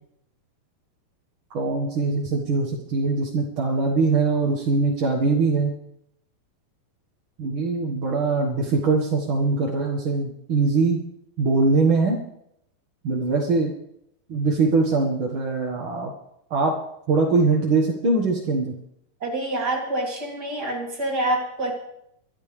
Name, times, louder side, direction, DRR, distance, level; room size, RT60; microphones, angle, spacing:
voice 1, 1.5-5.8 7.4-11.0 11.4-12.2 13.0-13.7 14.3-16.1 16.5-16.8 17.1-18.7, right 3 dB, 45° right, -2 dB, 1.8 m, -22 dB
voice 2, 19.2-21.7, right 1 dB, 25° right, 0 dB, 3.4 m, -26 dB
24.5 x 11.0 x 3.4 m, 0.75 s
omnidirectional pair, 4.2 m